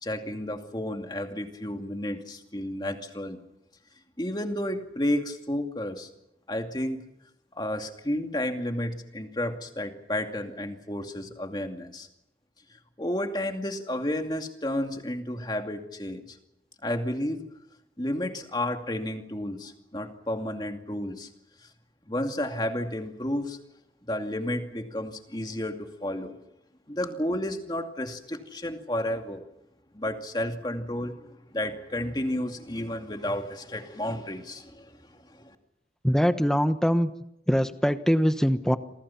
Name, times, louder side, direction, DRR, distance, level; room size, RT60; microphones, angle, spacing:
voice 1, 0.0-3.4 4.2-6.1 6.5-7.1 7.6-12.1 12.7-16.4 16.8-17.5 18.0-21.3 21.6-21.7 22.0-23.6 24.0-26.4 26.9-29.5 29.9-35.5, left 1 dB, 25° left, 5 dB, 2.4 m, -32 dB
voice 2, 36.0-37.1 37.5-38.8, equal, 5° left, 9 dB, 1.1 m, -23 dB
28.5 x 24.0 x 5.9 m, 0.82 s
head